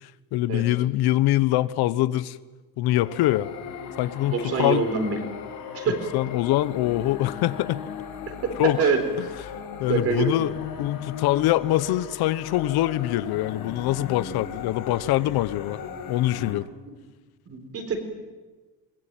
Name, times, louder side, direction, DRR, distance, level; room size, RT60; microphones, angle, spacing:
voice 1, 0.0-2.4 2.8-3.5 4.0-4.8 6.1-7.8 8.6-8.8 9.8-15.8 16.1-16.7, left 15 dB, 90° left, 16 dB, 1.0 m, -24 dB
sound 1, 2.9-16.5, left 7 dB, 65° left, 4.9 m, -38 dB
voice 2, 4.3-5.2 5.7-6.0 8.4-9.0 9.9-10.3 16.9-17.0 17.5-18.0, right 5 dB, 40° right, 7 dB, 3.9 m, -25 dB
22.0 x 21.0 x 9.1 m, 1.3 s
cardioid pair, 175°, 37 cm